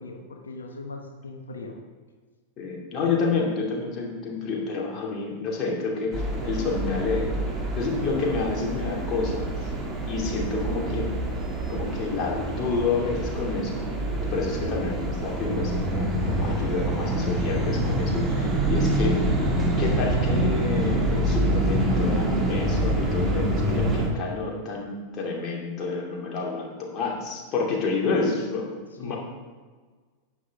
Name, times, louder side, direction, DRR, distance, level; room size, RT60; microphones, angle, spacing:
voice 1, 0.0-1.8 29.0-29.1, left 3 dB, 70° left, 3 dB, 1.2 m, -39 dB
voice 2, 2.6-7.4 7.7-9.7 10.0-11.1 11.7-13.8 14.3-19.2 19.8-29.2, left 4 dB, 35° left, -2 dB, 2.6 m, -29 dB
sound 1, 6.1-24.1, right 1 dB, 15° right, 2.1 m, -26 dB
11.0 x 8.6 x 3.6 m, 1.5 s
figure-of-eight pair, 90°, 0 cm